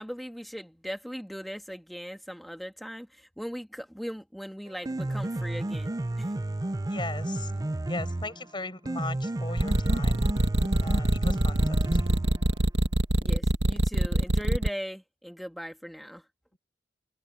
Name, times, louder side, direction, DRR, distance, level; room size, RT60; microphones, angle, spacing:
voice 1, 0.0-6.4 13.2-16.2, equal, ahead, 2.5 m, -39 dB
Piano, 4.7-12.7, right 1 dB, 20° right, 0.5 m, -32 dB
voice 2, 6.9-7.5 7.9-10.3 10.8-12.1, left 3 dB, 25° left, 7.6 m, -38 dB
sound 1, 9.6-14.7, right 1 dB, 75° right, 1.8 m, -23 dB
open air
head